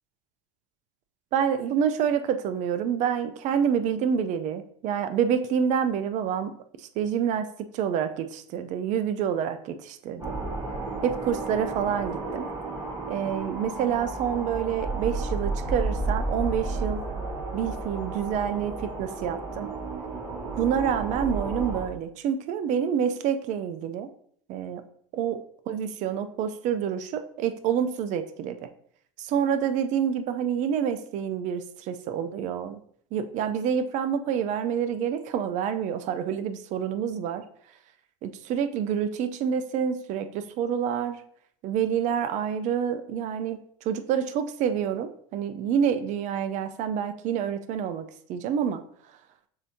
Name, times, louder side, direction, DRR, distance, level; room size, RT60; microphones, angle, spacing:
voice 1, 1.3-10.4 11.0-12.5 13.1-17.0 17.5-19.7 20.6-24.1 24.5-24.8 25.1-25.4 25.7-28.7 29.2-32.8 33.1-37.4 38.2-41.2 41.6-48.8, right 8 dB, 50° right, 10 dB, 0.5 m, -28 dB
sound 1, 10.2-21.8, right 3 dB, 20° right, 1.4 m, -32 dB
6.7 x 2.8 x 2.7 m, 0.63 s
supercardioid pair, 105°, 16 cm